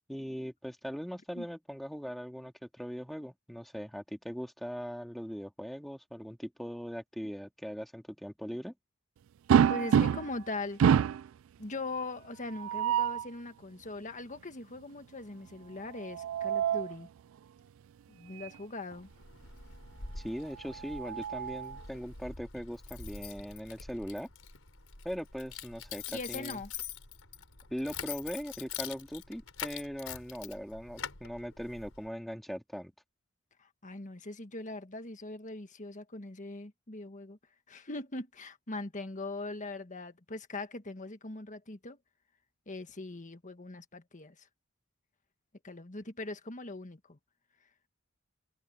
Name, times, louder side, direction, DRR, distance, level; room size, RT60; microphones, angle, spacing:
voice 1, 0.1-8.7 20.2-24.3 25.0-26.6 27.7-32.9, equal, ahead, 2.3 m, -40 dB
sound 1, 9.5-10.4 10.8-11.3 12.5-13.3 15.9-17.0 18.4-18.6 18.9-19.0 20.6-21.8, right 8 dB, 70° right, 0.3 m, -27 dB
voice 2, 9.7-10.8 11.6-17.1 18.1-19.1 26.1-26.7 33.6-37.4 37.7-42.0 42.7-44.5 45.6-47.2, left 2 dB, 40° left, 1.6 m, -41 dB
Keys jangling, 19.0-32.1, left 7 dB, 90° left, 4.6 m, -45 dB
head